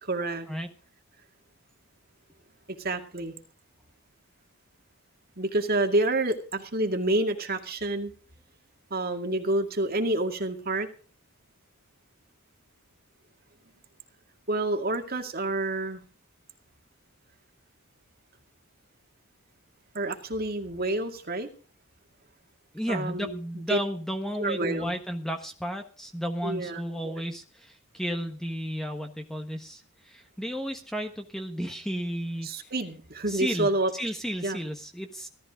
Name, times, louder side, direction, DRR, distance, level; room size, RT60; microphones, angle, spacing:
voice 1, 0.0-0.5 2.8-3.3 5.4-8.1 8.9-10.9 14.5-16.0 19.9-21.5 22.9-23.8 24.4-24.9 26.4-27.2 32.4-33.9 34.4-34.6, right 2 dB, 40° right, 5 dB, 2.2 m, -28 dB
voice 2, 22.7-32.5 33.3-35.3, equal, ahead, 4 dB, 1.3 m, -33 dB
18.0 x 13.0 x 3.8 m, 0.38 s
head